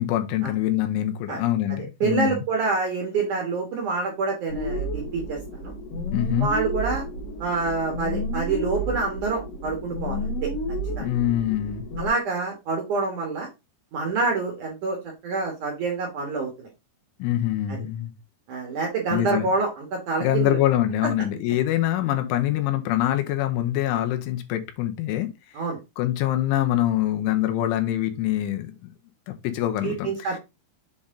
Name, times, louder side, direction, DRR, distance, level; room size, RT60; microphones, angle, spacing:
voice 1, 0.0-2.4 6.1-6.5 11.0-11.9 17.2-18.1 19.1-19.5 20.2-25.3 26.0-28.9 29.3-30.4, left 13 dB, 85° left, 3.4 m, -24 dB
voice 2, 2.0-5.7 6.4-7.0 7.4-10.5 11.0-11.1 12.0-13.5 13.9-15.0 15.2-16.7 18.5-20.6 25.5-25.8 29.8-30.4, right 4 dB, 65° right, 2.1 m, -27 dB
sound 1, 4.5-12.1, equal, 60° left, 3.7 m, -31 dB
7.6 x 4.1 x 3.7 m
omnidirectional pair, 5.5 m